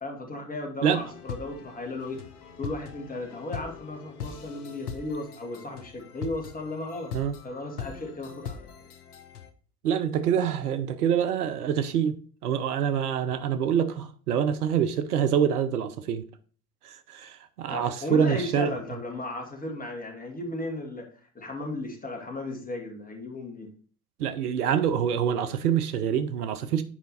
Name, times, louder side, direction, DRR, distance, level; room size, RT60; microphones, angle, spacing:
voice 1, 0.0-2.2 2.6-7.1 7.4-8.9 17.7-21.1 21.3-23.7, left 2 dB, 20° left, 2.2 m, -35 dB
sound 1, 0.9-9.5, left 7 dB, 85° left, 0.9 m, -41 dB
voice 2, 9.8-12.2 12.4-16.2 16.8-18.7 24.2-26.8, right 8 dB, 80° right, 0.8 m, -26 dB
7.4 x 5.1 x 4.2 m
hypercardioid pair, 70°, 45 cm